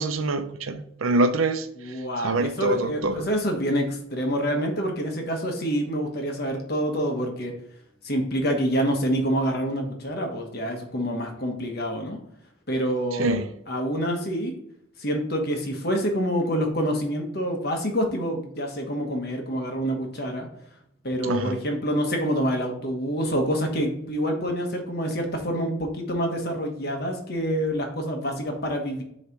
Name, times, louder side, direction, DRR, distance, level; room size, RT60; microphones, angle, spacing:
voice 1, 0.0-3.3 13.1-13.5 21.2-21.6, right 2 dB, 85° right, 0.6 m, -25 dB
voice 2, 1.8-7.6 8.0-12.2 12.7-13.4 13.7-14.5 15.0-20.5 21.0-29.0, equal, 50° left, 1.2 m, -27 dB
6.7 x 3.2 x 4.6 m
head